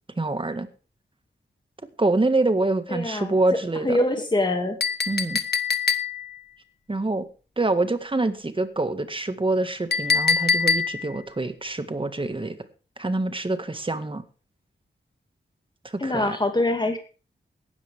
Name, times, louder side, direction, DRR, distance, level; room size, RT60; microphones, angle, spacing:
voice 1, 0.1-0.7 2.0-4.0 5.1-5.4 6.9-7.3 7.6-12.6 13.0-14.2 15.8-16.4, right 2 dB, 25° right, 10 dB, 1.8 m, -25 dB
voice 2, 2.9-3.6 3.8-4.8 16.0-17.0, left 1 dB, 20° left, 5 dB, 2.3 m, -24 dB
Chink clink, 4.8-6.4 9.9-11.2, left 5 dB, 55° left, 1.3 m, -24 dB
17.0 x 12.5 x 3.6 m, 0.36 s
wide cardioid pair, 115°, 20 cm